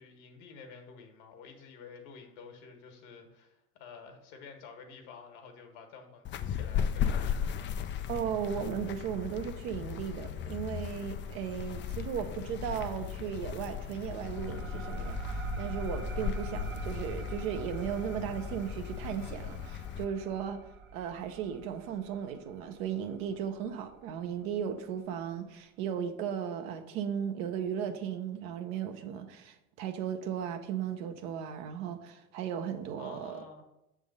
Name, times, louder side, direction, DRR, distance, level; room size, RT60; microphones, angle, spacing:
voice 1, 0.0-7.7 33.0-33.6, left 5 dB, 65° left, 4 dB, 1.5 m, -50 dB
sound 1, 6.2-20.0, left 8 dB, 30° left, 0.4 m, -36 dB
voice 2, 8.1-20.6 20.9-33.4, right 8 dB, 65° right, 7 dB, 0.9 m, -36 dB
sound 2, 14.2-23.4, right 5 dB, 30° right, 0.7 m, -43 dB
6.8 x 3.6 x 5.4 m, 0.90 s
hypercardioid pair, 80°, 42 cm